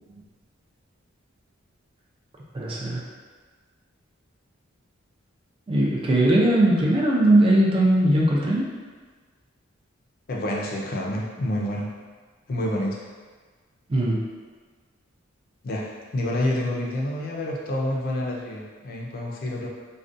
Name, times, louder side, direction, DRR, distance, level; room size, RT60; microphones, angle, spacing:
voice 1, 2.5-3.0 5.7-8.6 13.9-14.2, right 1 dB, 25° right, -4 dB, 0.4 m, -19 dB
voice 2, 10.3-11.9 12.5-13.0 15.6-19.7, left 1 dB, 45° left, -2 dB, 0.4 m, -28 dB
2.4 x 2.2 x 2.5 m, 1.4 s
head